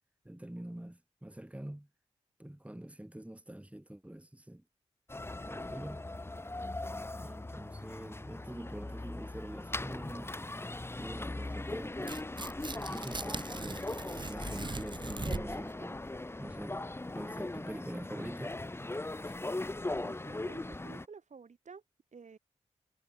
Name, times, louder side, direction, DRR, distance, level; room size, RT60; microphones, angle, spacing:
voice 1, 0.2-1.9 2.4-4.6 5.5-6.0 7.2-10.4 11.0-12.2 12.8-16.0 16.4-16.9 17.1-18.5 19.2-19.4, right 1 dB, 10° right, 2.3 m, -45 dB
sound 1, 5.1-21.1, left 2 dB, 20° left, 0.8 m, -39 dB
Tearing, 12.0-15.7, right 3 dB, 35° right, 1.5 m, -40 dB
voice 2, 19.8-21.8 22.1-22.4, right 5 dB, 70° right, 6.6 m, -51 dB
cardioid pair, 45°, 13 cm